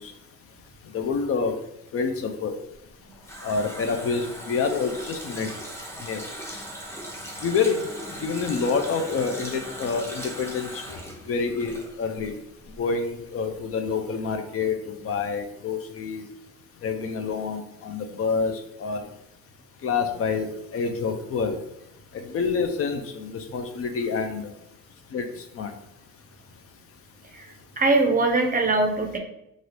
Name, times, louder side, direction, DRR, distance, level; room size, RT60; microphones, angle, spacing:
voice 1, 0.9-1.5 1.9-2.5 3.4-5.5 6.0-6.2 7.4-7.9 8.2-11.0 11.3-12.3 12.8-16.2 16.8-18.5 18.8-19.0 19.8-20.5 20.7-21.6 22.3-24.5 25.1-25.3 25.6-25.7, left 5 dB, 50° left, 6 dB, 0.4 m, -27 dB
Water tap faucet, 2.8-12.4 12.6-12.8, equal, 10° left, 0.7 m, -39 dB
voice 2, 27.3-29.2, right 2 dB, 30° right, 4 dB, 0.5 m, -22 dB
2.6 x 2.5 x 3.2 m, 0.83 s
cardioid pair, 90°, 30 cm